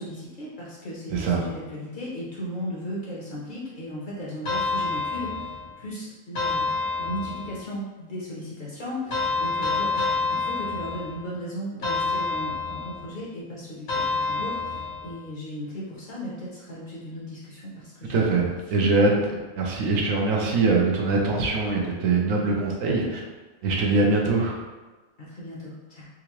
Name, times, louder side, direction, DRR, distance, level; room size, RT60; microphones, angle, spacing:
voice 1, 0.0-6.7 7.0-19.0 25.2-26.1, equal, 45° left, -6 dB, 0.8 m, -36 dB
voice 2, 1.1-1.5 18.0-19.2 19.6-23.2 23.6-24.6, right 3 dB, 75° right, 0 dB, 1.0 m, -23 dB
sound 1, 4.4-5.8 6.3-7.7 9.1-11.3 11.8-13.1 13.9-15.2, left 3 dB, 80° left, 1.6 m, -28 dB
3.8 x 2.5 x 3.0 m, 1.2 s
omnidirectional pair, 1.4 m